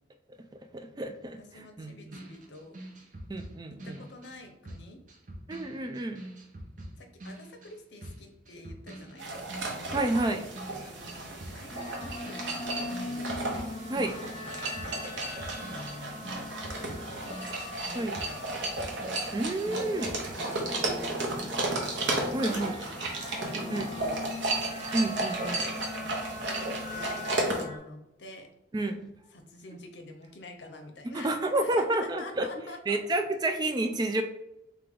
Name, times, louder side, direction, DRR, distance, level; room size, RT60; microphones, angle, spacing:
voice 1, 0.7-2.2 3.3-4.0 5.5-6.2 9.9-10.5 13.9-14.2 17.9-18.2 19.3-20.1 22.3-22.7 23.7-23.9 24.9-25.7 28.7-29.1 31.1-32.5 32.9-34.2, right 2 dB, 25° right, 7 dB, 0.3 m, -30 dB
voice 2, 1.4-2.8 3.8-5.0 7.0-9.7 10.8-13.5 14.3-16.9 17.2-17.5 17.8-18.5 20.4-23.3 23.6-24.5 25.9-28.5 29.3-33.0, left 2 dB, 80° left, 5 dB, 0.7 m, -47 dB
sound 1, 2.1-11.1 11.4-20.3, right 1 dB, 45° right, 0.7 m, -46 dB
sound 2, 9.2-27.6, right 2 dB, 85° right, 0.8 m, -34 dB
sound 3, 11.7-27.8, left 2 dB, 40° left, 0.9 m, -42 dB
3.7 x 3.4 x 3.4 m, 0.88 s
head